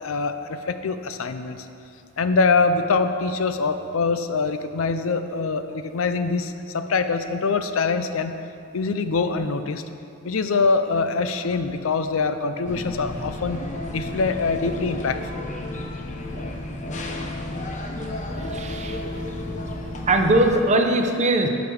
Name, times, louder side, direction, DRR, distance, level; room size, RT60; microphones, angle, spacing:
voice 1, 0.0-1.7 2.2-8.4 8.7-9.8 10.2-13.6 13.9-15.2, left 4 dB, 75° left, 9 dB, 0.5 m, -24 dB
sound 1, 12.6-20.6, left 1 dB, 35° left, 0.8 m, -32 dB
voice 2, 18.5-19.0 20.1-21.5, right 1 dB, 35° right, 4 dB, 0.8 m, -20 dB
10.5 x 5.1 x 6.4 m, 2.7 s
head